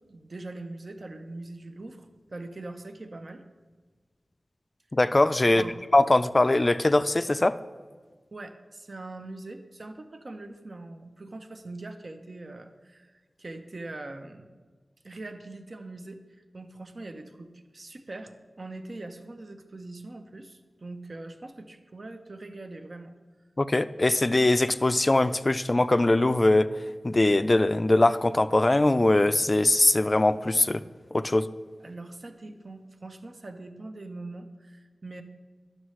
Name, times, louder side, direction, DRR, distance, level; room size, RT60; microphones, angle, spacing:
voice 1, 0.1-3.4 5.5-5.8 8.3-13.1 13.4-14.6 15.0-16.2 16.5-23.1 31.8-35.2, right 2 dB, 60° right, 6 dB, 0.6 m, -42 dB
voice 2, 4.9-5.6 5.9-7.5 23.6-26.7 27.0-30.8 31.1-31.5, left 2 dB, 40° left, 13 dB, 0.3 m, -21 dB
11.0 x 6.5 x 3.1 m, 1.4 s
cardioid pair, 45°, 0 cm